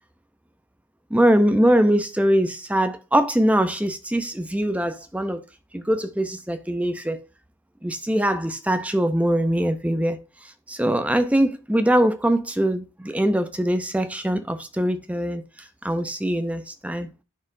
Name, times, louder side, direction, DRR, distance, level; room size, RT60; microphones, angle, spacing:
voice 1, 1.1-5.4 5.7-7.2 7.8-15.4 15.8-17.1, right 1 dB, 5° right, 0.6 m, -22 dB
11.5 x 4.3 x 2.6 m
head